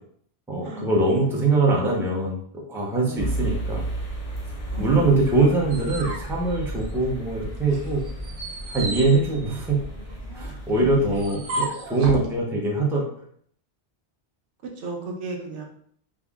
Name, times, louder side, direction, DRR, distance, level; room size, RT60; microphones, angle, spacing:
voice 1, 0.5-3.8 4.8-8.0 8.7-9.8 10.3-13.1, right 3 dB, 5° right, -3 dB, 0.5 m, -23 dB
voice 2, 1.2-1.9 3.0-3.4 4.7-5.3 10.7-11.4 14.6-15.6, right 2 dB, 85° right, 1 dB, 1.0 m, -35 dB
sound 1, 3.2-11.3, right 1 dB, 35° left, 0.7 m, -33 dB
sound 2, 5.3-7.3 7.7-12.3, right 2 dB, 55° right, 0.8 m, -34 dB
3.7 x 2.0 x 3.5 m, 0.63 s
omnidirectional pair, 1.2 m